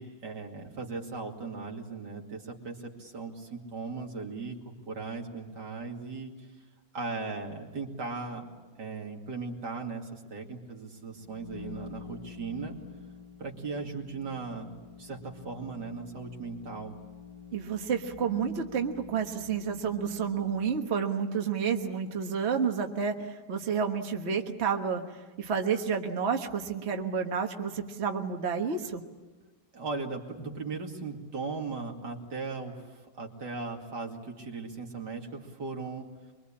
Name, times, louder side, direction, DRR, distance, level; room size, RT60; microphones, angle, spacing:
voice 1, 0.0-6.3 6.9-8.5 8.8-12.8 13.4-16.9 29.7-36.1, right 4 dB, 85° right, 1 dB, 3.1 m, -38 dB
sound 1, 11.1-21.0, left 7 dB, 30° left, 1.2 m, -48 dB
voice 2, 17.5-25.0 25.4-29.0, right 6 dB, 40° right, 4 dB, 1.5 m, -30 dB
24.0 x 23.5 x 8.7 m, 1.3 s
omnidirectional pair, 1.8 m